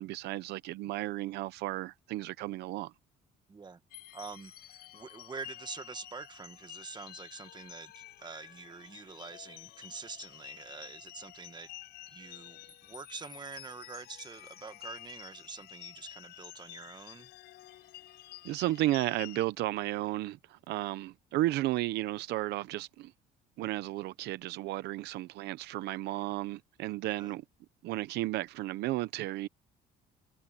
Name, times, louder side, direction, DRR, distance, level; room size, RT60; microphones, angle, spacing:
voice 1, 0.0-2.9 18.4-23.1 23.6-27.4 27.8-29.5, right 16 dB, 80° right, 0.8 m, -33 dB
voice 2, 3.5-3.8 4.1-11.7 12.1-17.3 27.2-27.3, right 5 dB, 25° right, 1.7 m, -46 dB
sound 1, 3.9-19.4, left 14 dB, 75° left, 5.8 m, -50 dB
cardioid pair, 110°, 17 cm